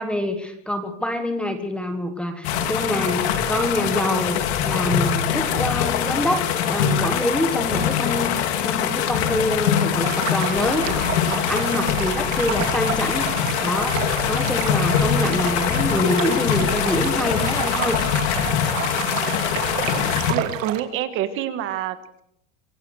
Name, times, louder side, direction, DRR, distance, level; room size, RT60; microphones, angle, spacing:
voice 1, 0.0-10.8 11.3-18.0, left 1 dB, 5° left, 7 dB, 1.4 m, -26 dB
sound 1, 2.4-20.3, left 8 dB, 60° left, 3.3 m, -23 dB
sound 2, 10.0-20.8, right 12 dB, 85° right, 2.8 m, -31 dB
voice 2, 20.3-22.2, right 11 dB, 35° right, 11 dB, 1.6 m, -27 dB
25.5 x 16.0 x 6.3 m, 0.71 s
supercardioid pair, 165°, 37 cm